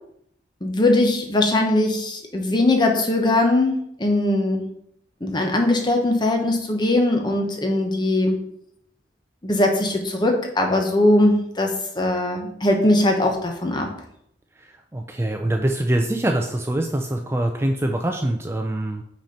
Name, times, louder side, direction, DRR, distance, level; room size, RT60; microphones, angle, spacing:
voice 1, 0.6-4.6 5.2-8.4 9.4-13.9, left 1 dB, 25° left, 3 dB, 1.0 m, -20 dB
voice 2, 14.6-19.0, right 1 dB, 15° right, 4 dB, 0.4 m, -24 dB
5.9 x 4.3 x 5.2 m, 0.72 s
head